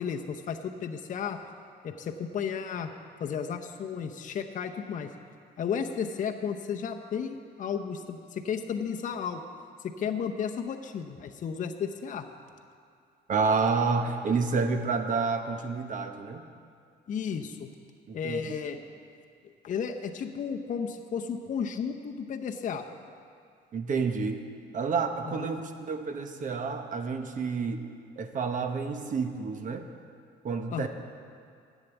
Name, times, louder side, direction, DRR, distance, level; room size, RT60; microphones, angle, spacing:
voice 1, 0.0-1.4 1.8-2.9 3.2-5.1 5.6-9.4 9.8-12.3 17.1-17.7 18.1-18.8 19.6-22.9 25.3-25.6 30.7-30.9, left 7 dB, 45° left, 4 dB, 0.7 m, -33 dB
voice 2, 13.3-16.4 18.1-18.5 23.7-24.4 24.7-27.8 28.2-29.9 30.4-30.9, right 4 dB, 45° right, 6 dB, 1.0 m, -29 dB
10.5 x 8.2 x 8.0 m, 2.3 s
cardioid pair, 115°, 19 cm